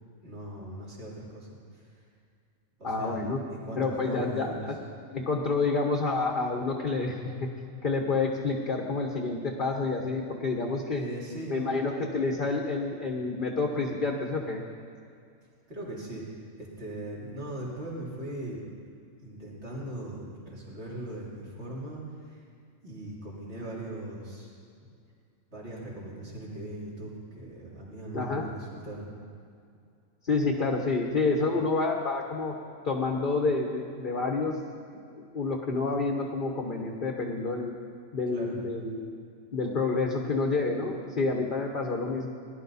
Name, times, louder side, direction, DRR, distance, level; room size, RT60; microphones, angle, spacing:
voice 1, 0.2-2.0 2.8-4.6 10.9-11.6 15.7-16.2 16.6-18.6 19.2-22.4 22.8-24.5 25.5-29.1 38.3-38.6, right 1 dB, 50° right, -6 dB, 3.5 m, -39 dB
voice 2, 2.8-3.4 3.8-4.7 5.1-7.5 7.8-11.0 11.5-14.6 28.1-28.5 30.2-32.5 32.8-34.6 34.9-37.7 38.1-39.1 39.5-42.3, left 3 dB, 40° left, 1 dB, 1.2 m, -29 dB
18.5 x 11.5 x 4.1 m, 2.4 s
omnidirectional pair, 1.5 m